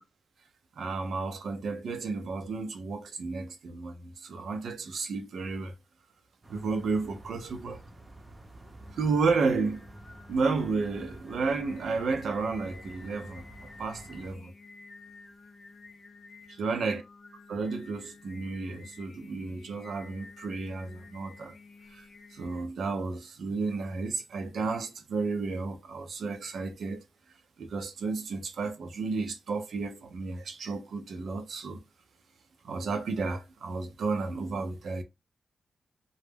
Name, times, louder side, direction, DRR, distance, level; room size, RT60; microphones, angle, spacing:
voice 1, 0.8-5.7 6.5-7.8 8.9-9.8 10.3-13.4 13.8-14.5 16.5-17.0 17.5-21.5 21.9-27.0 27.6-31.8 32.6-35.0, right 4 dB, 80° right, 0.5 m, -32 dB
sound 1, 6.4-14.4, right 1 dB, 30° right, 0.6 m, -49 dB
Singing, 8.6-22.6, left 3 dB, 50° left, 0.5 m, -52 dB
2.3 x 2.0 x 3.3 m
cardioid pair, 55°, 0 cm